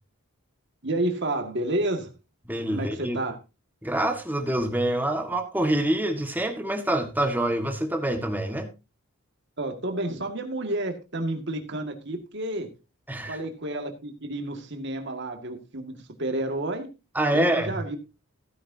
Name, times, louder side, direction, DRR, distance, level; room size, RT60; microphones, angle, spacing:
voice 1, 0.8-2.1 2.7-3.4 9.6-12.7 13.3-16.9 17.3-18.0, right 1 dB, 55° right, 2.0 m, -30 dB
voice 2, 2.5-3.2 3.8-8.7 13.1-13.4 17.1-17.8, right 1 dB, 10° right, 1.5 m, -26 dB
15.5 x 10.0 x 2.8 m
head